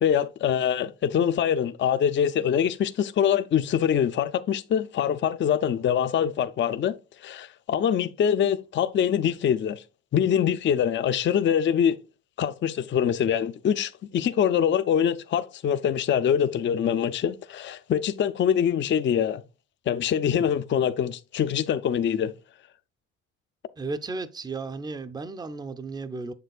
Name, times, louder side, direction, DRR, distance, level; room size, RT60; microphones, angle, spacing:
voice 1, 0.0-6.9 7.2-9.8 10.1-12.0 12.4-19.4 19.9-22.3, left 8 dB, 40° left, 0.4 m, -24 dB
voice 2, 23.8-26.3, right 3 dB, 15° right, 0.5 m, -34 dB
7.1 x 6.7 x 2.3 m
cardioid pair, 90°, 30 cm